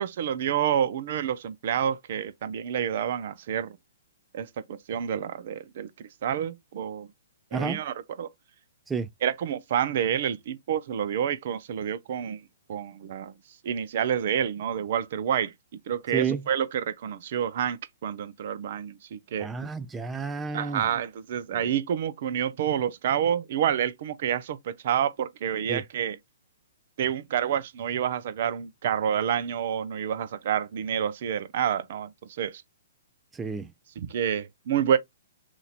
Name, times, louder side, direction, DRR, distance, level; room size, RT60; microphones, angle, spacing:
voice 1, 0.0-3.8 4.3-7.1 7.5-8.3 9.2-12.4 12.7-13.3 13.6-15.5 15.9-19.5 20.5-26.2 27.0-32.6 34.0-35.0, right 9 dB, 55° right, 0.6 m, -28 dB
voice 2, 16.1-16.4 19.4-20.9 25.7-25.8 33.3-33.7, right 5 dB, 10° right, 0.4 m, -30 dB
3.0 x 2.6 x 4.1 m
hypercardioid pair, 135°, 0 cm